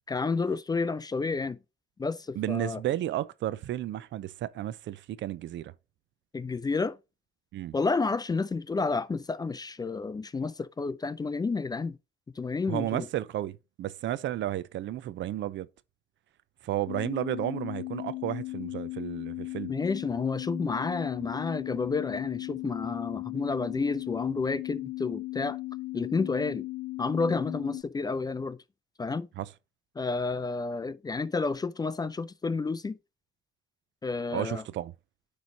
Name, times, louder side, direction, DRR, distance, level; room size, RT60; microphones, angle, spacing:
voice 1, 0.1-1.6 2.0-2.8 6.3-7.0 7.7-12.0 12.4-13.1 19.7-25.6 25.9-26.7 27.0-28.6 29.0-29.3 30.0-33.0 34.0-34.6, left 4 dB, 20° left, 0.3 m, -30 dB
voice 2, 2.4-5.7 7.5-7.7 12.7-15.7 16.6-19.7 29.4-29.5 34.3-34.9, right 13 dB, 70° right, 0.5 m, -32 dB
sound 1, 16.9-27.8, left 20 dB, 90° left, 0.4 m, -37 dB
9.4 x 3.2 x 3.9 m
cardioid pair, 90°, 20 cm